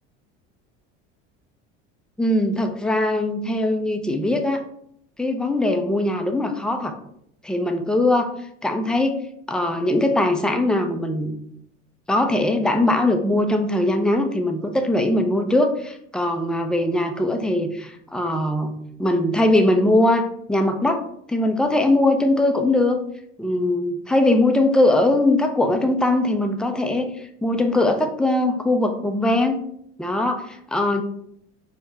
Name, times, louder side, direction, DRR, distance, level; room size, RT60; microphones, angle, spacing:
voice 1, 2.2-4.6 5.2-6.9 7.4-8.3 8.6-9.2 9.5-11.3 12.1-18.7 19.0-21.0 21.3-23.0 23.4-29.6 30.0-31.0, left 1 dB, ahead, 5 dB, 0.4 m, -21 dB
4.6 x 2.2 x 4.0 m, 0.71 s
supercardioid pair, 90°, 33 cm